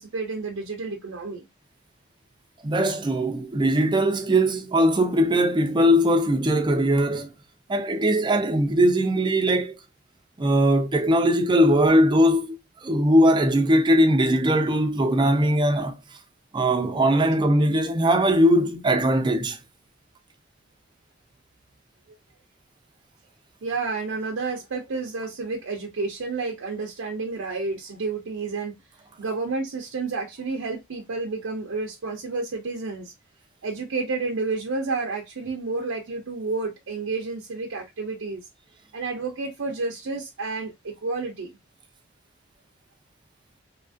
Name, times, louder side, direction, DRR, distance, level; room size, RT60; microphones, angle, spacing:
voice 1, 0.0-1.5 22.1-22.2 23.6-28.8 29.2-33.1 33.6-38.4 38.9-41.5, right 3 dB, 70° right, 0.5 m, -30 dB
voice 2, 2.6-7.3 7.7-9.7 10.4-16.0 16.5-19.6, equal, 20° right, 0.4 m, -20 dB
2.8 x 2.4 x 2.5 m
head